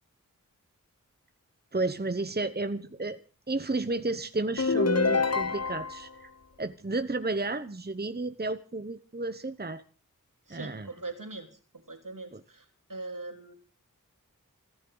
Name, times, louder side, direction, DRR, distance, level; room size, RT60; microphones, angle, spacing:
voice 1, 1.7-3.2 3.5-6.3 6.6-9.8 10.5-10.9 12.3-12.4, right 2 dB, 30° right, 11 dB, 1.0 m, -32 dB
sound 1, 4.6-6.1, left 4 dB, 50° left, 0.9 m, -26 dB
voice 2, 10.5-13.5, right 3 dB, 70° right, 5 dB, 3.3 m, -42 dB
29.0 x 10.5 x 4.0 m, 0.37 s
wide cardioid pair, 40°, 33 cm